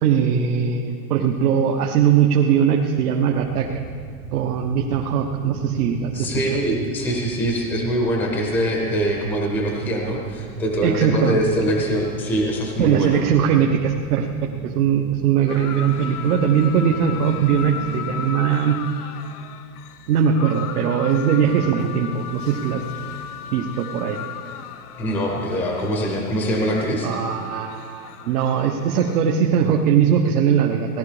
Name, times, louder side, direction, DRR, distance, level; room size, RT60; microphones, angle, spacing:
voice 1, 0.0-3.7 4.3-6.3 10.8-11.4 12.8-19.1 20.1-22.8 23.5-24.2 27.0-31.0, right 8 dB, 80° right, 2 dB, 1.2 m, -20 dB
sound 1, 3.2-18.2, right 7 dB, 60° right, 1.4 m, -37 dB
voice 2, 6.1-13.2 25.0-27.1, equal, 5° left, 0 dB, 0.5 m, -23 dB
sound 2, 15.5-29.2, left 9 dB, 85° left, 1.0 m, -36 dB
16.5 x 12.0 x 4.9 m, 2.1 s
supercardioid pair, 180°, 45 cm